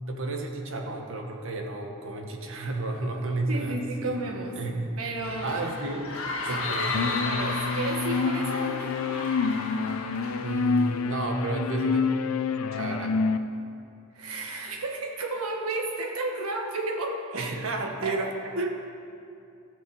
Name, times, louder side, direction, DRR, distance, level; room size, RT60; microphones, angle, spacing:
voice 1, 0.1-3.8 4.0-4.2 4.6-4.9 5.4-6.1 6.5-7.0 10.4-12.0 12.7-13.2 17.3-18.7, right 2 dB, 65° right, 2 dB, 1.3 m, -31 dB
voice 2, 3.5-4.6 5.0-5.6 6.4-8.9 14.1-17.5 18.0-18.1, right 2 dB, 85° right, 1 dB, 1.4 m, -33 dB
sound 1, 5.2-11.3, left 3 dB, 70° left, 1.5 m, -34 dB
sound 2, 6.9-13.4, left 5 dB, 90° left, 0.5 m, -27 dB
15.0 x 5.3 x 7.2 m, 2.5 s
head